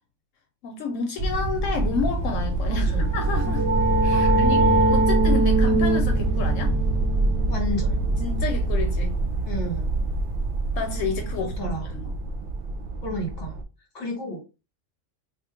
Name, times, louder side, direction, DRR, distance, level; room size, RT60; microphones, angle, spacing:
voice 1, 0.6-3.7 4.0-4.6 4.9-6.7 8.2-9.2 10.8-12.1, left 4 dB, 80° left, 1.0 m, -30 dB
sound 1, 1.2-13.6, right 2 dB, 65° right, 0.5 m, -25 dB
voice 2, 2.7-3.1 4.1-4.9 7.5-8.1 9.4-9.9 11.4-11.9 13.0-13.5 13.9-14.4, left 1 dB, 35° left, 1.6 m, -32 dB
sound 2, 2.9-8.5, right 1 dB, 20° right, 0.8 m, -24 dB
2.9 x 2.5 x 3.5 m
omnidirectional pair, 1.3 m